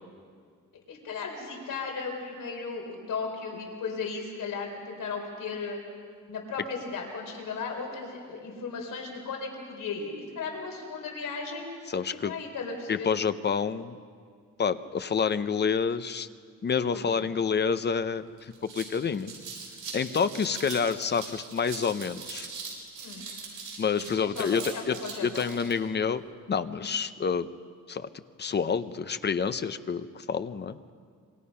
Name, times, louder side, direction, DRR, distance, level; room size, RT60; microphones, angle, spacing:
voice 1, 0.9-5.8 6.3-11.7 12.1-13.1 16.9-17.4 23.0-23.3 24.0-25.4 26.8-26.9, left 4 dB, 80° left, 1 dB, 4.4 m, -36 dB
voice 2, 11.9-12.3 12.9-14.0 14.6-16.3 16.6-19.3 19.9-22.5 23.8-24.9 25.2-26.2 26.5-27.5 27.9-28.1 28.4-30.8, left 6 dB, 35° left, 12 dB, 0.7 m, -28 dB
sound 1, 18.0-18.1 18.4-25.7, right 5 dB, 80° right, 7.4 m, -41 dB
26.5 x 25.5 x 5.6 m, 2.1 s
wide cardioid pair, 160°, 32 cm